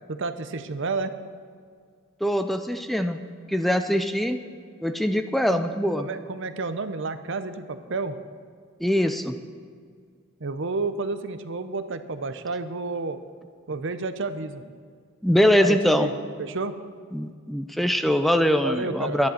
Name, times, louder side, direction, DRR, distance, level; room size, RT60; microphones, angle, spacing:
voice 1, 0.1-1.2 5.5-5.6 6.0-8.2 10.4-13.2 13.7-14.8 15.6-16.7 18.6-19.3, right 3 dB, 65° right, 11 dB, 0.7 m, -31 dB
voice 2, 2.2-3.2 3.5-4.4 4.8-6.1 8.8-9.3 15.2-16.1 17.1-19.3, equal, ahead, 8 dB, 0.5 m, -22 dB
11.5 x 10.5 x 6.5 m, 2.1 s
head